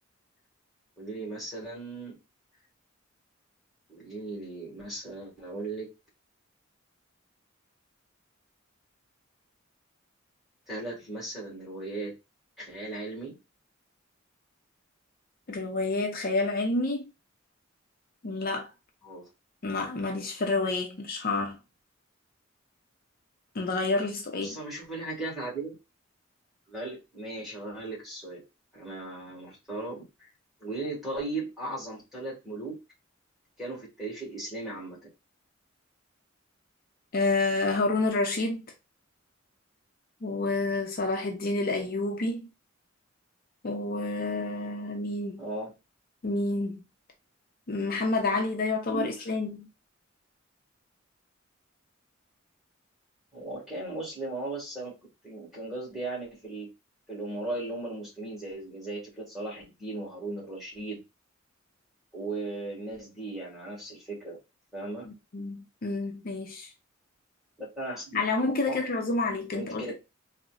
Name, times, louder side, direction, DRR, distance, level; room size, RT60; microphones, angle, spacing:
voice 1, 1.0-2.2 3.9-5.9 10.7-12.1 12.6-13.4 19.0-19.3 24.3-25.8 26.7-28.4 28.7-30.3 30.6-32.8 33.6-35.1 45.4-45.7 48.9-49.2 53.3-55.0 55.2-56.7 57.1-61.0 62.1-64.4 64.7-65.1 67.6-68.2 68.7-68.8 69.5-69.9, right 2 dB, ahead, 1.6 m, -37 dB
voice 2, 15.5-17.1 18.2-18.7 19.6-21.6 23.5-24.6 37.1-38.6 40.2-42.5 43.6-45.4 46.2-46.8 47.7-49.7 65.1-66.7 68.1-69.9, left 3 dB, 45° left, 0.5 m, -29 dB
3.9 x 2.1 x 2.3 m
head